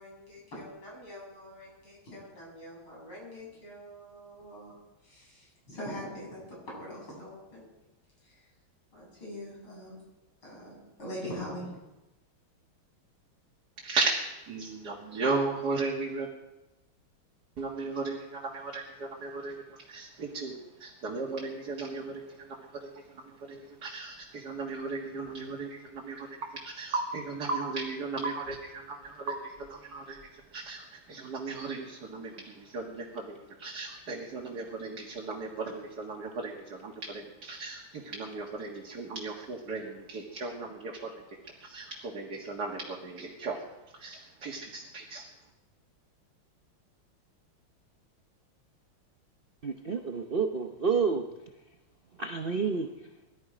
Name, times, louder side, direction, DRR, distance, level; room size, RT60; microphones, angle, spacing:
voice 1, 0.0-7.7 8.2-8.5 8.9-10.0 10.4-11.7, equal, 80° left, -4 dB, 8.6 m, -43 dB
voice 2, 14.5-16.3 17.6-41.2 41.6-43.6 44.0-45.2, right 3 dB, 50° right, -1 dB, 2.3 m, -36 dB
sound 1, 21.3-40.2, right 2 dB, 35° right, 1.9 m, -44 dB
voice 3, 49.6-51.3 52.2-52.9, right 5 dB, 70° right, 4 dB, 0.5 m, -29 dB
21.0 x 13.0 x 5.0 m, 1.0 s
omnidirectional pair, 2.3 m